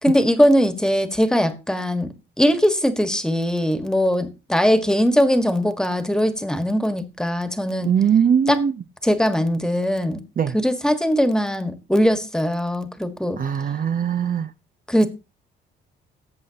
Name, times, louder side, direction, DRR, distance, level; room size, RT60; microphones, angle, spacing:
voice 1, 0.0-7.9 8.5-8.6 9.0-10.2 10.5-13.4 14.9-15.1, equal, 5° left, 1.6 m, -20 dB
voice 2, 7.8-8.7 10.4-10.5 13.4-14.5, right 8 dB, 45° right, 0.7 m, -20 dB
18.0 x 7.7 x 2.9 m
cardioid pair, 90°, 20 cm